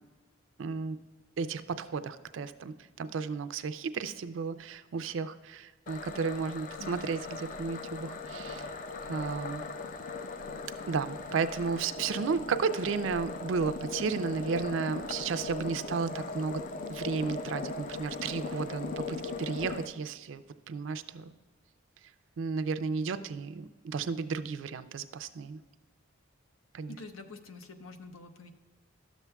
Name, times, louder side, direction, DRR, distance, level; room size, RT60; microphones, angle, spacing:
voice 1, 0.6-1.0 1.4-8.7 9.1-9.6 10.9-16.6 16.9-20.4 20.7-21.3 22.4-25.6 26.7-26.9, right 5 dB, 70° right, 12 dB, 0.4 m, -33 dB
sound 1, 5.9-19.9, left 3 dB, 40° left, 0.3 m, -39 dB
voice 2, 26.9-28.5, left 3 dB, 85° left, 7 dB, 0.7 m, -46 dB
12.5 x 7.2 x 2.3 m, 1.4 s
head